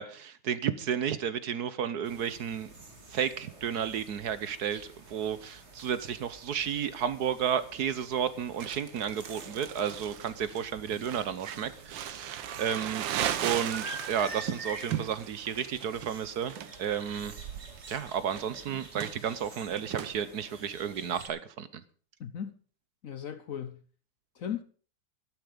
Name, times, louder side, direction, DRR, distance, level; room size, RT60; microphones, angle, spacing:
voice 1, 0.0-2.7 3.1-4.8 5.1-13.1 13.4-17.3 17.9-21.8, right 8 dB, 60° right, 1.3 m, -32 dB
sound 1, 2.0-21.3, right 2 dB, 35° right, 2.7 m, -48 dB
Crumpling crinkling, 8.6-20.1, right 10 dB, 85° right, 1.7 m, -38 dB
voice 2, 22.2-22.6 23.0-23.8 24.3-24.6, left 8 dB, 55° left, 1.0 m, -37 dB
13.0 x 13.0 x 5.1 m
omnidirectional pair, 2.0 m